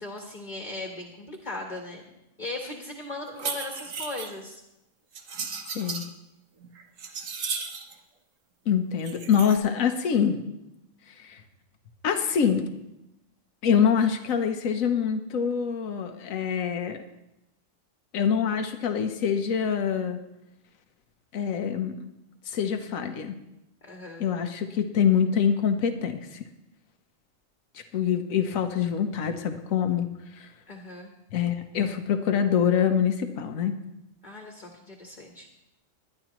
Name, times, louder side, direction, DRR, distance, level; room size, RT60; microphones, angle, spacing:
voice 1, 0.0-2.0 2.4-4.6 23.8-24.3 30.7-31.1 34.2-35.5, left 2 dB, 35° left, 2 dB, 1.4 m, -38 dB
sound 1, 3.3-4.3 5.1-6.1 6.6-7.9 9.0-9.6, right 5 dB, 75° right, 1.4 m, -35 dB
voice 2, 8.7-10.4 11.1-11.4 12.0-12.7 13.6-17.0 18.1-20.2 21.3-22.0 22.4-23.4 24.2-26.5 27.7-30.5 31.3-33.8, left 7 dB, 90° left, 7 dB, 1.3 m, -25 dB
20.5 x 11.0 x 3.0 m, 0.89 s
omnidirectional pair, 1.4 m